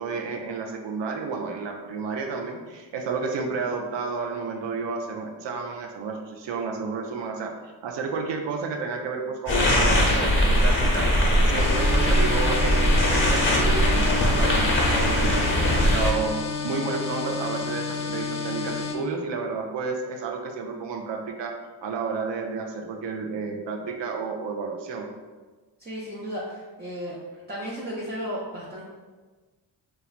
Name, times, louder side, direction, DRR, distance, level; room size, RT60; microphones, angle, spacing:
voice 1, 0.0-25.1, right 4 dB, 75° right, 2 dB, 0.5 m, -31 dB
sound 1, 9.5-16.1, equal, 25° left, 0.8 m, -21 dB
sound 2, 11.6-19.0, left 4 dB, 75° left, 0.5 m, -31 dB
voice 2, 25.8-27.2 27.5-28.8, equal, 25° right, -5 dB, 0.5 m, -34 dB
2.9 x 2.3 x 2.4 m, 1.3 s
cardioid pair, 55°, 43 cm